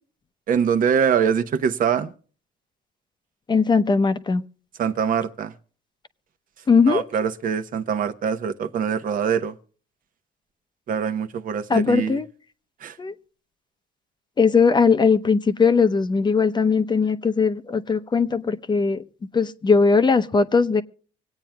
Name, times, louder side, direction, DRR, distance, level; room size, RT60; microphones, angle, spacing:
voice 1, 0.5-2.1 4.8-5.5 6.9-9.5 10.9-12.2 12.8-13.0, right 7 dB, 55° right, 0.9 m, -23 dB
voice 2, 3.5-4.4 6.7-7.0 11.7-12.3 13.0-13.1 14.4-19.0 19.3-20.8, left 5 dB, 25° left, 0.7 m, -19 dB
25.5 x 8.9 x 2.3 m
cardioid pair, 110°, 17 cm